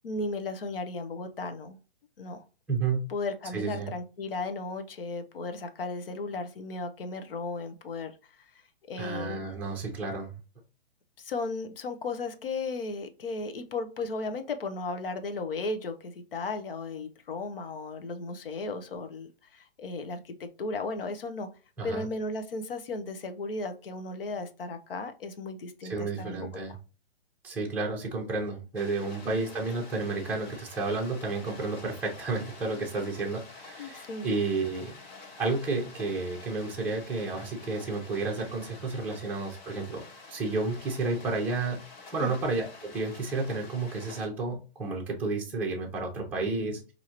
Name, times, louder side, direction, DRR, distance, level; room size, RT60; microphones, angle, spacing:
voice 1, 0.0-1.8 2.2-2.4 3.1-8.5 8.9-9.4 11.2-21.5 21.8-26.5 29.2-29.4 33.8-34.3 42.2-42.3, left 3 dB, 65° left, 8 dB, 0.8 m, -35 dB
voice 2, 2.7-3.0 3.5-3.9 9.0-10.3 21.8-22.1 25.8-26.8 27.4-35.0 35.4-40.0 40.3-41.8 42.1-46.9, right 3 dB, 5° right, -2 dB, 0.6 m, -31 dB
sound 1, 28.8-44.3, left 3 dB, 50° left, 1.4 m, -48 dB
4.6 x 2.7 x 2.9 m, 0.33 s
hypercardioid pair, 150°, 31 cm